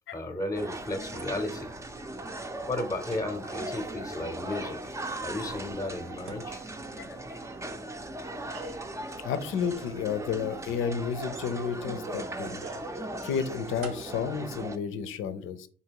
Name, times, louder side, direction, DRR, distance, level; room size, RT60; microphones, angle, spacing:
voice 1, 0.1-1.7 2.7-6.6 8.2-8.3, left 2 dB, 15° left, 7 dB, 0.8 m, -34 dB
sound 1, 0.5-14.8, right 1 dB, 15° right, 0.5 m, -38 dB
sound 2, 3.1-4.1 4.5-4.6 4.9-7.7 8.3-9.0 9.6-9.7 10.6-10.7 11.0-11.2 11.4-13.1 13.3-14.1, right 5 dB, 90° right, 0.9 m, -49 dB
voice 2, 9.2-12.6 13.2-15.7, left 7 dB, 85° left, 12 dB, 0.6 m, -31 dB
3.9 x 2.8 x 4.6 m, 0.43 s
cardioid pair, 90°, 20 cm